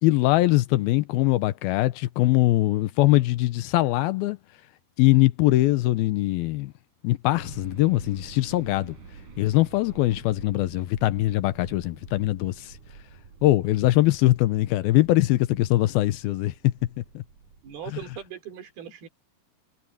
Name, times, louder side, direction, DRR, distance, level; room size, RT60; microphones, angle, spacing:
voice 1, 0.0-4.4 5.0-6.7 7.0-9.0 9.4-12.7 13.4-17.2, left 17 dB, 85° left, 2.6 m, -22 dB
sound 1, 7.3-18.3, right 5 dB, 55° right, 5.6 m, -48 dB
voice 2, 17.6-19.1, right 9 dB, 80° right, 5.3 m, -39 dB
omnidirectional pair, 4.4 m